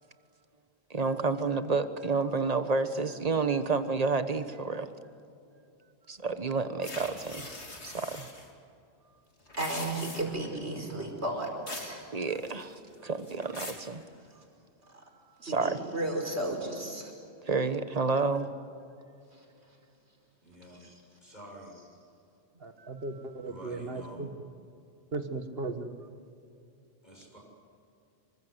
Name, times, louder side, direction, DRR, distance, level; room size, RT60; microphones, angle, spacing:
voice 1, 0.9-4.9 6.1-7.5 7.8-8.3 12.1-14.0 15.4-15.8 17.5-18.5 22.8-22.9, right 4 dB, 35° right, 10 dB, 1.4 m, -30 dB
sound 1, 6.8-8.5 9.4-10.5 11.7-12.0 12.3-12.8 13.2-13.9, left 2 dB, 90° left, 3.5 m, -42 dB
voice 2, 9.6-12.0 15.4-17.1 19.3-19.4 20.8-20.9, right 1 dB, 80° right, 2 dB, 5.3 m, -34 dB
voice 3, 12.7-13.1 20.4-20.8 21.2-21.8 23.5-24.2 27.0-27.4, right 1 dB, 40° left, 0 dB, 7.3 m, -49 dB
voice 4, 22.6-24.3 25.1-25.9, right 3 dB, 60° right, 7 dB, 1.9 m, -36 dB
27.0 x 24.5 x 8.2 m, 2.6 s
omnidirectional pair, 1.1 m